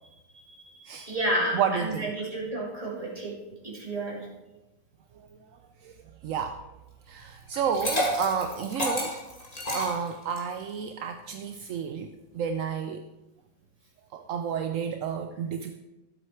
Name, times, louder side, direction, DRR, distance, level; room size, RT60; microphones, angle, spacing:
voice 1, 0.3-3.3 3.6-4.3, right 1 dB, 20° right, -4 dB, 2.6 m, -31 dB
voice 2, 1.5-2.1 5.1-5.3 5.8-6.0 6.2-6.6 7.1-9.2 9.7-13.0 14.1-15.7, right 7 dB, 65° right, 7 dB, 0.8 m, -31 dB
Liquid, 7.5-10.6, equal, 20° left, 2.5 m, -30 dB
13.0 x 7.9 x 4.4 m, 1.0 s
omnidirectional pair, 1.8 m